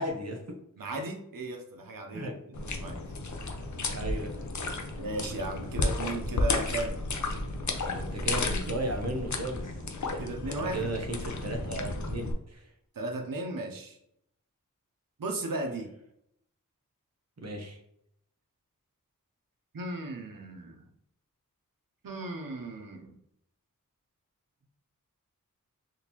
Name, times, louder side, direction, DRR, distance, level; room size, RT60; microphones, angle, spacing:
voice 1, 0.0-0.6 2.1-2.4 3.9-4.4 7.9-9.7 10.1-10.2 10.5-12.7 17.4-17.8, right 1 dB, 50° right, 2 dB, 0.8 m, -35 dB
voice 2, 0.8-3.0 5.0-7.0 10.2-10.9 13.0-14.0 15.2-15.9 19.7-20.8 22.0-23.2, right 2 dB, 85° right, 3 dB, 0.7 m, -36 dB
sound 1, 2.5-12.3, left 2 dB, 60° left, 0.6 m, -33 dB
3.7 x 2.7 x 2.9 m, 0.74 s
wide cardioid pair, 40°, 33 cm